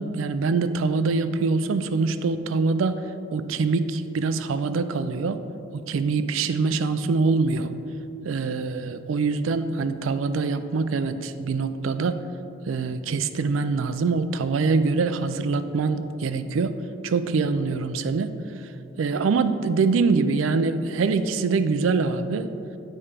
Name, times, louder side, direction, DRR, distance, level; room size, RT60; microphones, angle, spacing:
voice 1, 0.0-3.0 3.3-5.4 5.7-7.7 8.2-12.2 12.7-16.7 17.0-18.3 19.0-22.5, right 4 dB, 85° right, 11 dB, 0.4 m, -24 dB
8.8 x 4.3 x 5.0 m, 2.7 s
head